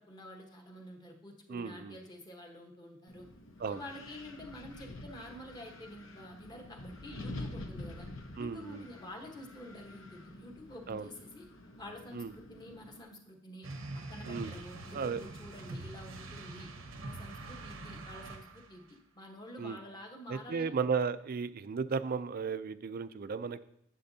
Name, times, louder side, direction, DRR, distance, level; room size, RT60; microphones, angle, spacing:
voice 1, 0.0-3.3 3.7-8.1 8.4-11.5 11.8-13.7 14.1-16.7 17.0-20.7, left 1 dB, 20° left, 1 dB, 1.1 m, -48 dB
voice 2, 1.5-2.0 3.6-3.8 8.4-8.9 10.9-11.1 12.1-12.3 14.2-14.6 14.9-15.2 19.6-19.8 20.3-23.6, right 5 dB, 45° right, 14 dB, 0.4 m, -35 dB
Wind, 3.1-13.0, left 2 dB, 75° left, 0.8 m, -47 dB
sound 1, 13.6-18.8, right 2 dB, 90° right, 0.9 m, -44 dB
10.0 x 7.4 x 2.7 m, 0.74 s
head